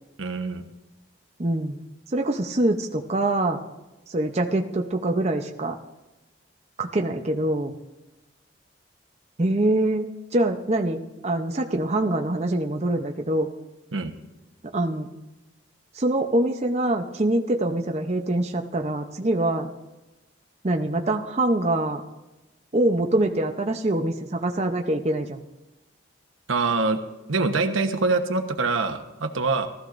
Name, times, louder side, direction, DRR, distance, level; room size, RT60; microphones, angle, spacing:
voice 1, 0.2-0.6 13.9-14.1 26.5-27.0 27.3-29.7, right 3 dB, 85° right, 6 dB, 1.1 m, -24 dB
voice 2, 1.4-1.8 2.1-3.6 4.1-5.8 6.8-7.7 9.4-13.5 14.7-15.1 15.9-19.7 20.6-22.0 22.7-25.4, right 1 dB, 35° right, 3 dB, 0.7 m, -24 dB
19.0 x 13.5 x 2.6 m, 1.0 s
head